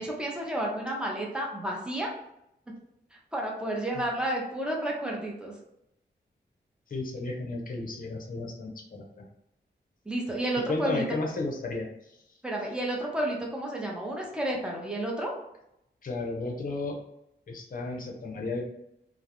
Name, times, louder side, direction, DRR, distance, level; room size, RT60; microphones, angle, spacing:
voice 1, 0.0-2.1 3.3-5.5 10.1-11.0 12.4-15.3, right 1 dB, 5° right, -2 dB, 0.7 m, -31 dB
voice 2, 6.9-9.3 10.7-12.2 16.0-16.9 17.5-18.6, left 2 dB, 50° left, 1 dB, 0.6 m, -33 dB
2.3 x 2.0 x 2.8 m, 0.81 s
cardioid pair, 70°, 18 cm